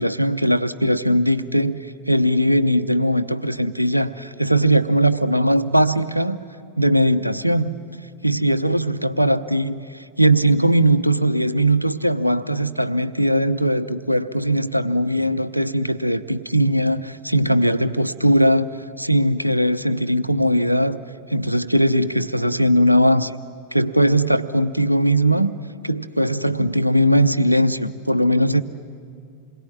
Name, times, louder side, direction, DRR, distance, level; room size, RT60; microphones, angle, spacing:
voice 1, 0.0-6.4 6.8-7.7 8.2-18.7 19.0-21.0 21.3-23.3 23.7-25.5 25.8-28.6, equal, 90° right, 14 dB, 0.8 m, -19 dB
27.5 x 21.5 x 9.7 m, 2.3 s
figure-of-eight pair, 90°, 0 cm